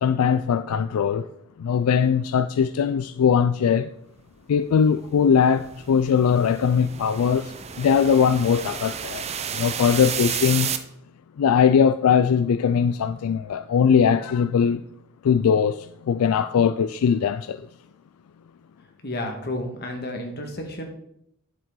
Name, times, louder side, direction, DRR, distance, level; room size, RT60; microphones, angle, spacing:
voice 1, 0.0-1.3 1.6-3.9 4.5-10.7 11.4-14.8 15.2-17.7, left 7 dB, 85° left, 0.4 m, -20 dB
sound 1, 4.8-10.8, right 8 dB, 30° right, 0.5 m, -32 dB
voice 2, 19.0-20.8, left 1 dB, 50° left, 1.6 m, -31 dB
9.8 x 7.5 x 3.8 m
head